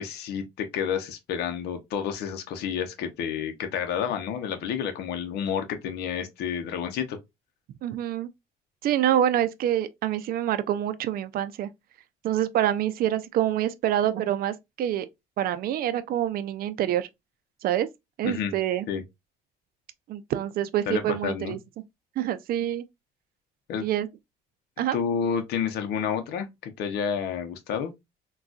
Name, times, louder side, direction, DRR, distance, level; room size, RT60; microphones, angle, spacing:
voice 1, 0.0-7.2 18.2-18.5 18.9-19.0 20.9-21.6 23.7-23.9 24.9-27.9, left 7 dB, 75° left, 0.7 m, -30 dB
voice 2, 7.8-8.3 8.8-11.7 12.2-15.1 15.4-17.1 17.6-17.9 18.2-18.9 20.1-21.8 22.2-22.8 23.8-24.1 24.8-25.0, right 11 dB, 60° right, 0.5 m, -26 dB
3.8 x 2.3 x 2.3 m
cardioid pair, 110°, 17 cm